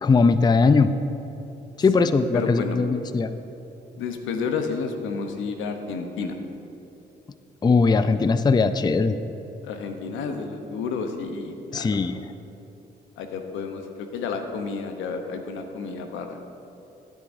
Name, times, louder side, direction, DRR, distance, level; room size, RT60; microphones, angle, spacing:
voice 1, 0.0-0.9 1.8-3.3 7.6-9.2 11.7-12.2, left 4 dB, 20° left, 12 dB, 0.4 m, -20 dB
voice 2, 2.0-2.8 4.0-6.4 9.6-12.0 13.2-16.4, left 5 dB, 85° left, 5 dB, 0.9 m, -31 dB
15.0 x 8.5 x 2.6 m, 2.9 s
supercardioid pair, 60°, 20 cm